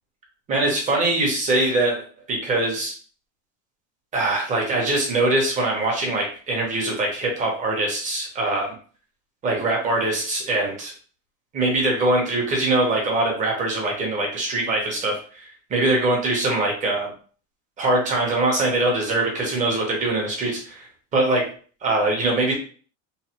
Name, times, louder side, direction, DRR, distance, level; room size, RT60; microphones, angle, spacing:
voice 1, 0.5-2.0 2.3-2.9 4.1-8.7 9.4-10.9 11.5-17.1 17.8-21.5 21.8-22.5, right 2 dB, 20° right, -1 dB, 0.7 m, -22 dB
3.1 x 2.1 x 2.8 m, 0.41 s
cardioid pair, 170°, 39 cm